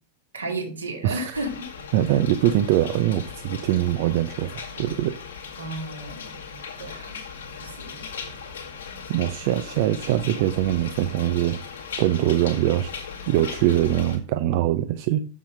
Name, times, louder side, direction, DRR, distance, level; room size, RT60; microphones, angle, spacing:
voice 1, 0.3-1.7 5.6-6.4 6.8-7.2 7.6-8.1, right 2 dB, 75° right, 2.1 m, -33 dB
sound 1, 1.3-14.2, left 6 dB, 65° left, 2.1 m, -38 dB
voice 2, 1.9-5.2 9.1-11.6 12.0-12.9 13.3-15.3, right 13 dB, 50° right, 0.5 m, -23 dB
7.3 x 7.2 x 6.3 m
figure-of-eight pair, 90°, 0 cm